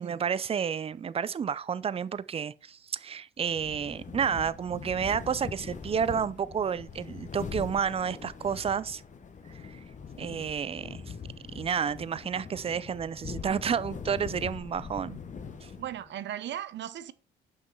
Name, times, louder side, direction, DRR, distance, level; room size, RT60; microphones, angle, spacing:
voice 1, 0.0-9.0 9.5-9.8 10.2-11.1 11.5-15.2 15.6-15.7, right 7 dB, 30° right, 0.4 m, -31 dB
sound 1, 3.4-16.1, left 5 dB, 40° left, 1.0 m, -42 dB
voice 2, 15.8-17.1, right 11 dB, 65° right, 0.7 m, -37 dB
6.2 x 5.6 x 4.5 m
cardioid pair, 90°, 20 cm